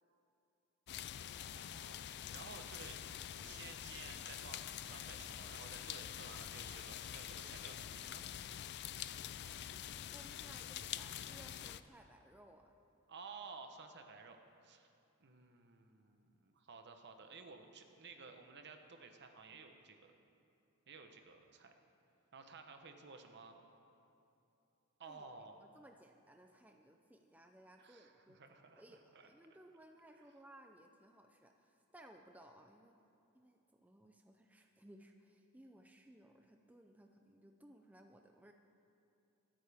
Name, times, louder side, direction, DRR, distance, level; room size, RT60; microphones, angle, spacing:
sound 1, 0.9-11.8, left 10 dB, 50° left, 0.4 m, -46 dB
voice 1, 1.3-3.0 3.4-8.2 13.1-14.4 14.6-14.9 15.2-20.1 20.9-21.7 22.3-23.6 25.0-25.5 27.8-28.8 29.1-29.3, right 4 dB, 50° right, 5 dB, 1.0 m, -54 dB
voice 2, 10.1-12.7 25.0-28.4 28.8-32.9 33.3-38.5, right 1 dB, 5° right, 3 dB, 0.5 m, -61 dB
23.5 x 8.9 x 3.6 m, 2.7 s
head